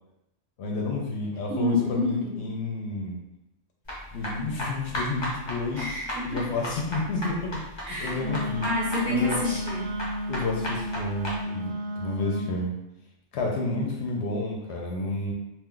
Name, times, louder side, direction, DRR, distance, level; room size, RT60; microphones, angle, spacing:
voice 1, 0.6-3.2 4.1-5.9 6.3-7.6 8.0-8.7 9.1-9.4 10.3-12.7 13.3-15.3, left 3 dB, 70° left, -1 dB, 0.8 m, -30 dB
voice 2, 1.5-2.4 5.8-6.5 7.8-8.2 8.6-10.0, left 2 dB, 40° right, -7 dB, 0.7 m, -28 dB
sound 1, 3.9-11.4, equal, 30° left, 0.6 m, -35 dB
Wind instrument woodwind instrument, 8.2-12.6, equal, 75° right, 0.9 m, -33 dB
2.4 x 2.2 x 3.7 m, 0.90 s
omnidirectional pair, 1.2 m